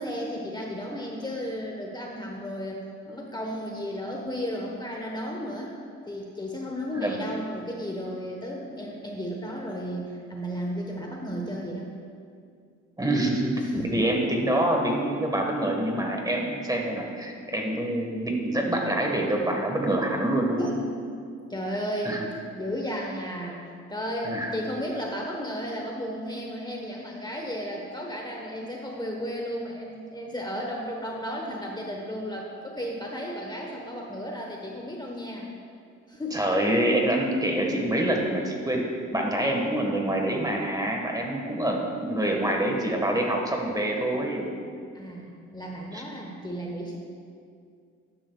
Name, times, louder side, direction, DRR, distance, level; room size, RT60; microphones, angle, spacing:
voice 1, 0.0-5.7 6.0-11.9 13.6-14.0 20.6-20.8 21.5-22.2 22.6-23.6 23.9-35.5 36.1-36.5 44.9-47.0, equal, 15° left, -1 dB, 1.1 m, -34 dB
voice 2, 13.0-20.7 22.0-22.2 24.2-24.5 36.3-38.8 39.1-44.5 45.9-46.0, right 1 dB, 10° right, 1 dB, 1.5 m, -26 dB
12.0 x 10.0 x 2.3 m, 2.3 s
cardioid pair, 90°, 30 cm